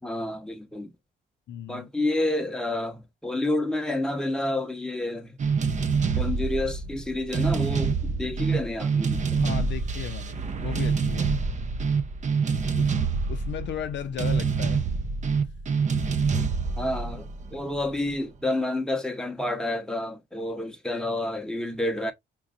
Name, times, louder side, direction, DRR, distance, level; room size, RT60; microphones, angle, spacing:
voice 1, 0.0-0.9 1.7-5.3 6.2-9.4 16.8-22.1, left 1 dB, 5° left, 0.9 m, -29 dB
voice 2, 1.5-1.9 9.4-11.3 12.8-12.9 13.3-14.8, left 9 dB, 65° left, 0.5 m, -35 dB
sound 1, 5.4-18.1, right 5 dB, 35° right, 0.6 m, -26 dB
3.6 x 2.9 x 2.5 m
cardioid pair, 90°, 20 cm